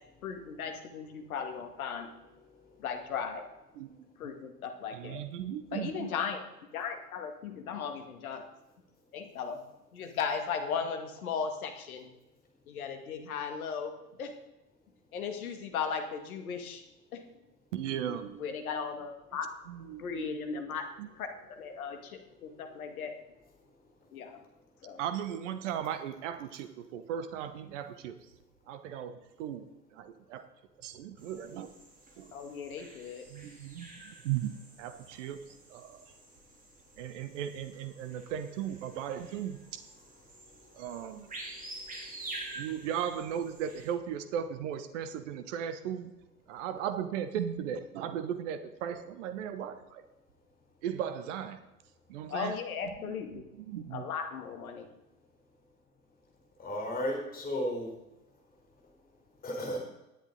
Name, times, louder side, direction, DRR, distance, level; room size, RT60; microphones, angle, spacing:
voice 1, 0.2-2.1 2.8-3.5 4.2-5.2 5.7-6.4 6.7-8.5 9.1-9.6 9.9-12.1 12.7-14.3 15.1-16.8 17.1-17.3 18.4-19.5 20.0-20.9 21.2-23.1 24.1-24.4 24.8-25.0 32.3-33.3 52.3-53.4 53.9-54.9, left 6 dB, 60° left, 6 dB, 2.2 m, -37 dB
voice 2, 4.9-6.1 17.7-18.6 19.7-20.4 21.0-21.1 25.0-28.2 28.7-30.5 30.8-31.7 32.2-32.3 33.3-36.1 37.0-39.8 40.7-41.3 42.5-46.1 46.5-50.0 50.8-51.6 52.1-52.6 53.0-54.1, right 9 dB, 45° right, 11 dB, 1.2 m, -37 dB
sound 1, 31.2-43.9, right 2 dB, 15° right, 3.3 m, -48 dB
voice 3, 56.6-57.9 59.4-59.8, equal, 20° left, 0 dB, 4.2 m, -33 dB
18.5 x 10.0 x 4.0 m, 0.96 s
figure-of-eight pair, 90°, 49 cm